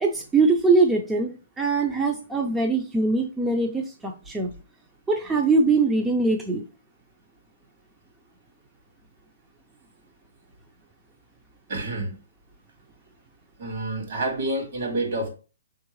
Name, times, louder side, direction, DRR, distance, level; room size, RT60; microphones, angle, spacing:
voice 1, 0.0-4.5 5.1-6.6, right 3 dB, 10° right, 0.4 m, -22 dB
voice 2, 11.7-12.2 13.6-15.3, right 2 dB, 60° right, 2.1 m, -28 dB
4.6 x 3.5 x 3.1 m
hypercardioid pair, 165°, 0 cm